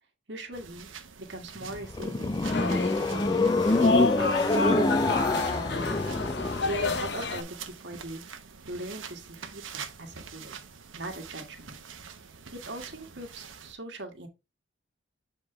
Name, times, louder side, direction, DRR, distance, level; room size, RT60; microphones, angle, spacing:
voice 1, 0.3-0.9 1.2-3.4 3.9-6.0 6.3-8.2 8.7-10.6 11.0-11.8 12.6-14.3, right 2 dB, 65° right, 1.6 m, -40 dB
sound 1, 0.5-13.7, right 7 dB, 90° right, 1.0 m, -46 dB
sound 2, 1.6-7.0, left 2 dB, 20° left, 0.3 m, -26 dB
sound 3, 2.4-7.4, left 3 dB, 60° left, 0.8 m, -30 dB
7.6 x 4.4 x 3.3 m
head